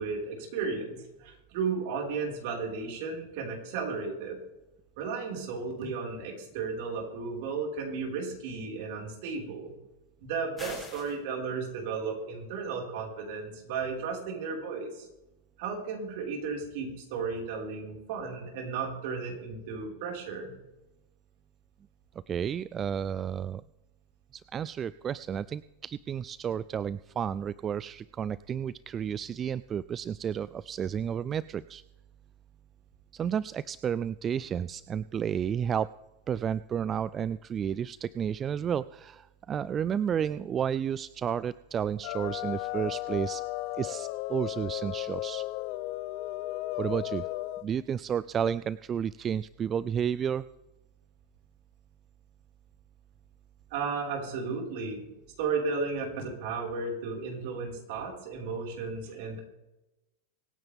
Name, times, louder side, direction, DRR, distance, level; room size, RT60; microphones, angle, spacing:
voice 1, 0.0-4.4 5.0-9.7 10.2-15.1 15.6-20.5 53.7-55.0 55.4-59.4, right 5 dB, 60° right, 0 dB, 5.0 m, -34 dB
sound 1, 10.6-11.2, left 3 dB, 15° left, 5.0 m, -42 dB
voice 2, 22.3-23.6 24.3-31.8 33.1-35.9 36.3-43.4 43.8-45.4 46.8-47.3 47.6-50.5, right 8 dB, 25° right, 17 dB, 0.3 m, -31 dB
sound 2, 42.0-47.7, left 17 dB, 50° left, 0.6 m, -35 dB
25.0 x 9.7 x 3.6 m, 0.99 s
supercardioid pair, 135°, 0 cm